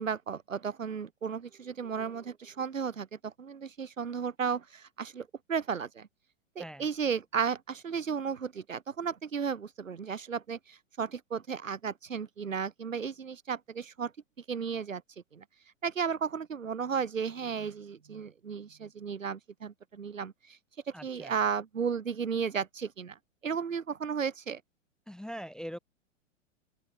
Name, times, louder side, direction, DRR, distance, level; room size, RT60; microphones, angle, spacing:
voice 1, 0.0-6.1 6.5-14.1 14.5-15.0 15.3-15.4 15.8-20.6 21.0-23.2 23.4-24.6, right 6 dB, 80° right, 3.3 m, -34 dB
voice 2, 20.9-21.3 25.1-25.8, equal, ahead, 0.8 m, -42 dB
open air
hypercardioid pair, 110°, 38 cm